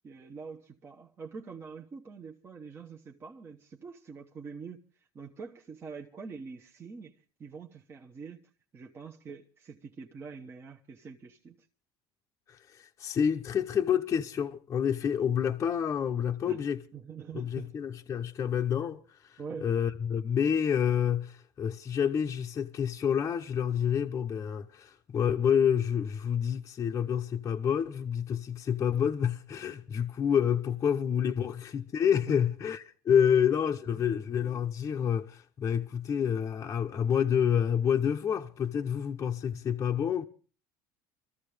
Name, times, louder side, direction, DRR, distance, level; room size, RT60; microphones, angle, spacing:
voice 1, 0.0-8.4 8.7-11.7 16.5-16.6 16.9-17.7 19.4-19.7 31.4-31.5 32.3-32.4 33.9-34.1, right 5 dB, 25° right, 1.0 m, -45 dB
voice 2, 12.5-16.8 17.3-40.2, left 8 dB, 30° left, 0.7 m, -28 dB
24.5 x 14.0 x 3.4 m
cardioid pair, 130°, 9 cm